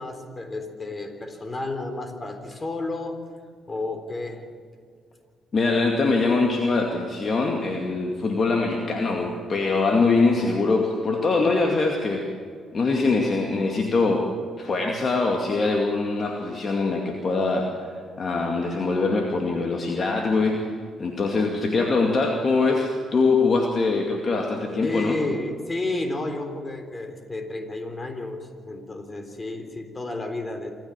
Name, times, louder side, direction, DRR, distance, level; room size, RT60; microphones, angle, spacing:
voice 1, 0.0-3.2 3.7-4.4 24.8-30.7, left 2 dB, 30° left, 6 dB, 3.7 m, -31 dB
voice 2, 5.5-12.3 12.7-14.3 14.6-20.7 21.0-25.2, left 3 dB, 45° left, 2 dB, 2.3 m, -23 dB
26.0 x 14.0 x 7.5 m, 2.1 s
hypercardioid pair, 45°, 0 cm